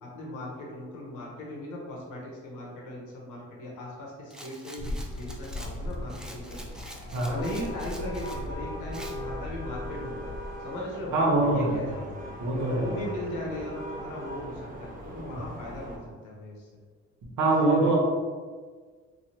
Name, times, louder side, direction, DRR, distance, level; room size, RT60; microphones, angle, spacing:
voice 1, 0.0-6.6 7.2-10.3 10.6-11.2 11.4-12.1 12.6-16.7 17.6-17.9, left 1 dB, 90° left, -3 dB, 1.0 m, -38 dB
Rattle, 4.3-8.4 8.9-9.2, right 1 dB, ahead, 0.3 m, -46 dB
sound 1, 4.8-10.6, left 1 dB, 60° left, 0.5 m, -38 dB
sound 2, 6.0-16.0, equal, 25° right, 0.8 m, -41 dB
voice 2, 11.1-12.0 12.4-13.1 17.4-17.9, right 2 dB, 75° right, -4 dB, 1.1 m, -24 dB
3.2 x 2.4 x 2.8 m, 1.5 s
cardioid pair, 90°, 30 cm